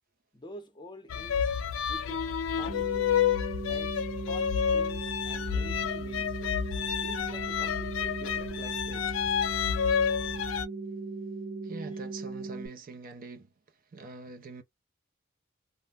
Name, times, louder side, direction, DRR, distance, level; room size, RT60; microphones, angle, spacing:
voice 1, 0.3-1.5 1.9-2.3 2.6-3.3 3.7-6.4 7.0-9.1 11.9-12.0, left 1 dB, 25° left, 0.6 m, -48 dB
sound 1, 1.1-10.7, left 8 dB, 75° left, 0.4 m, -29 dB
sound 2, 2.7-12.7, right 3 dB, 85° right, 1.0 m, -38 dB
voice 2, 11.6-13.5 13.9-14.6, right 3 dB, 45° right, 0.5 m, -44 dB
2.5 x 2.1 x 3.3 m
head